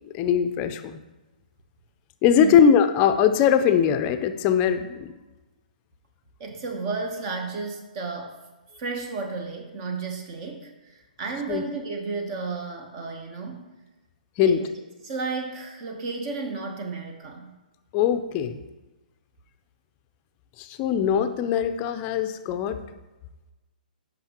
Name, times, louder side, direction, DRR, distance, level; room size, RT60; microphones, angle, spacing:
voice 1, 0.1-1.0 2.2-5.1 11.5-11.6 14.4-14.6 17.9-18.6 20.6-22.8, left 8 dB, 30° left, 9 dB, 0.5 m, -21 dB
voice 2, 6.4-8.4 8.8-13.7 14.4-14.6 15.0-17.5, right 4 dB, 40° right, 3 dB, 0.9 m, -33 dB
8.6 x 5.4 x 3.0 m, 1.1 s
hypercardioid pair, 130°, 5 cm